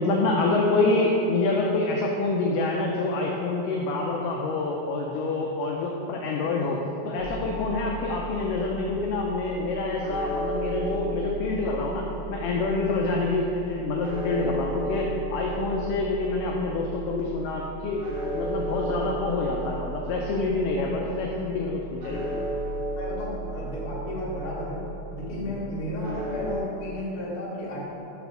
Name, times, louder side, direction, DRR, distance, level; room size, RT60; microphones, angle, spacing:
voice 1, 0.0-18.1 18.3-22.3 25.4-25.6, left 3 dB, 85° left, 0 dB, 1.9 m, -27 dB
sound 1, 7.2-26.6, right 2 dB, 70° right, 1.6 m, -35 dB
voice 2, 23.0-24.8 25.1-27.8, left 1 dB, 50° left, -9 dB, 2.1 m, -33 dB
6.0 x 4.2 x 5.7 m, 2.9 s
omnidirectional pair, 4.3 m